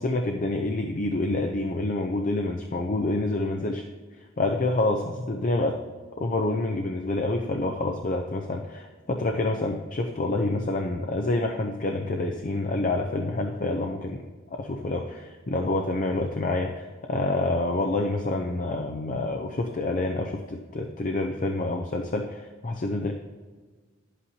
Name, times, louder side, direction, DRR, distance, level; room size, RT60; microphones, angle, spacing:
voice 1, 0.0-3.8 4.4-5.8 6.2-14.2 14.5-23.1, left 2 dB, 40° left, 3 dB, 0.6 m, -27 dB
11.5 x 8.2 x 2.8 m, 1.4 s
head